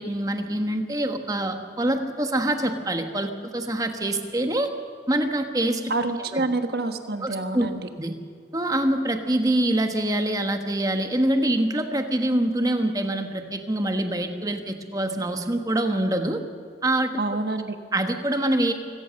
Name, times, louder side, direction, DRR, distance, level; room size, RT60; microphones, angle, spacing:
voice 1, 0.0-4.7 5.1-5.8 6.3-6.4 7.2-7.7 8.0-8.2 8.5-16.4 16.8-17.2 17.9-18.7, right 1 dB, 20° right, 6 dB, 1.3 m, -25 dB
voice 2, 5.9-7.8 17.2-17.8, right 2 dB, 60° right, 7 dB, 1.4 m, -27 dB
24.5 x 17.0 x 6.5 m, 2.1 s
head